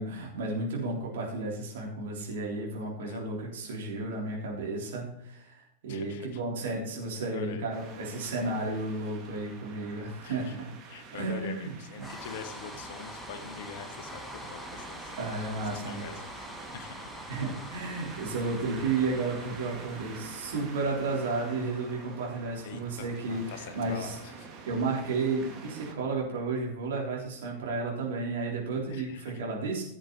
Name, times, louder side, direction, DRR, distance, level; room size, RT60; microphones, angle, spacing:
voice 1, 0.0-10.7 11.1-11.7 12.0-12.1 15.2-16.1 17.3-24.2 24.7-29.8, right 3 dB, 60° right, -3 dB, 3.7 m, -33 dB
voice 2, 5.9-6.4 7.3-7.7 10.2-10.6 10.9-16.5 16.7-17.1 22.6-24.5 28.9-29.5, left 6 dB, 55° left, 9 dB, 1.2 m, -44 dB
sound 1, 7.7-25.9, right 5 dB, 30° right, 2.2 m, -47 dB
sound 2, 12.0-26.1, left 1 dB, 5° left, 1.3 m, -46 dB
16.0 x 7.8 x 3.3 m, 0.79 s
figure-of-eight pair, 90°, 0 cm